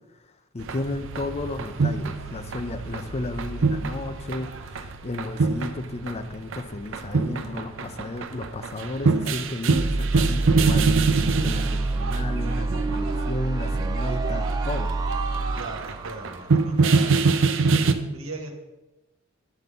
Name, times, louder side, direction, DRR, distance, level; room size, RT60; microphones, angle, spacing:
voice 1, 0.5-10.9 11.4-14.9, left 2 dB, 30° left, 9 dB, 0.5 m, -33 dB
sound 1, 0.6-17.9, right 4 dB, 65° right, 0.6 m, -25 dB
sound 2, 9.8-16.7, right 2 dB, 20° right, 0.4 m, -27 dB
voice 2, 15.5-17.3 18.0-18.5, right 3 dB, 85° right, 3 dB, 1.4 m, -38 dB
9.1 x 3.8 x 6.8 m, 1.1 s
head